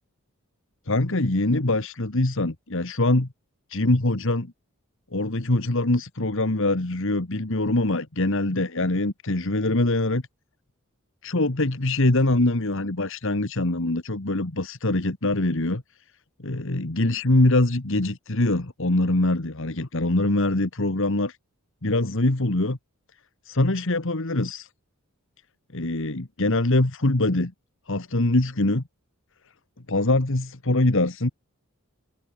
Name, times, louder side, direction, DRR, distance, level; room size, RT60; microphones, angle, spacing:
voice 1, 0.9-3.3 3.7-4.5 5.1-10.2 11.2-15.8 16.4-21.4 21.8-22.8 23.4-24.7 25.7-27.5 27.9-28.8 29.9-31.3, left 2 dB, 60° left, 1.7 m, -23 dB
head